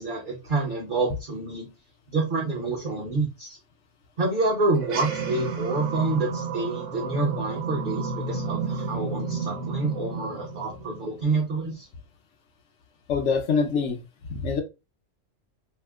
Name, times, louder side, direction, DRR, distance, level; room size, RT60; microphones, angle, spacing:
voice 1, 0.0-1.7 2.1-3.5 4.2-11.9, right 3 dB, 45° right, 0.9 m, -27 dB
sound 1, 4.8-11.5, right 4 dB, 75° right, 1.0 m, -32 dB
voice 2, 13.1-14.0 14.3-14.6, left 5 dB, 70° left, 0.9 m, -24 dB
2.8 x 2.1 x 3.4 m
omnidirectional pair, 1.3 m